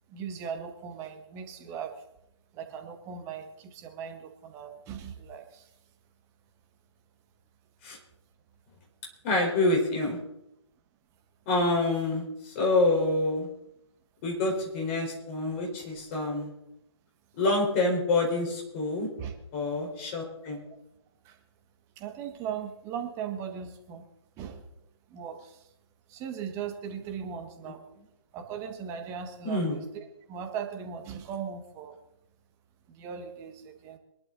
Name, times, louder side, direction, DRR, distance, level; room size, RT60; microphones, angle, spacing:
voice 1, 0.1-2.0 2.5-5.7 19.2-19.3 21.2-21.4 22.0-24.0 24.4-24.6 25.1-25.6 26.1-27.8 28.3-32.0 32.9-34.0, right 7 dB, 15° right, 5 dB, 1.5 m, -38 dB
voice 2, 9.2-10.2 11.5-13.5 14.2-16.5 17.4-19.1 19.5-20.6 27.6-27.7 29.4-29.8, left 2 dB, 25° left, 0 dB, 4.6 m, -27 dB
23.0 x 11.5 x 4.0 m, 0.83 s
figure-of-eight pair, 145°, 16 cm